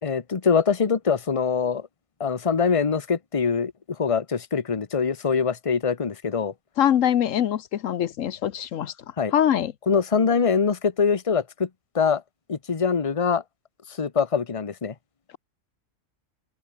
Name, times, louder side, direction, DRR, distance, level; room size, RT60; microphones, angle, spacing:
voice 1, 0.0-1.9 2.2-6.5 9.2-9.3 9.9-11.7 11.9-12.2 12.5-13.4 13.9-14.9, left 5 dB, 25° left, 1.1 m, -23 dB
voice 2, 6.8-8.9 9.3-9.7, left 10 dB, 80° left, 1.2 m, -23 dB
omnidirectional pair, 1.3 m